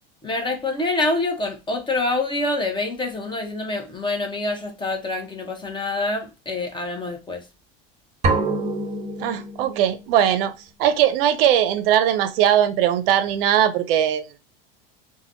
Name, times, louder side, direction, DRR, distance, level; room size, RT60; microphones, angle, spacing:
voice 1, 0.2-7.5, left 2 dB, 15° left, 0.7 m, -26 dB
sound 1, 8.2-10.1, right 3 dB, 25° right, 0.5 m, -25 dB
voice 2, 9.2-10.5 10.8-14.3, right 10 dB, 70° right, 0.5 m, -19 dB
3.3 x 2.2 x 2.5 m
hypercardioid pair, 105°, 30 cm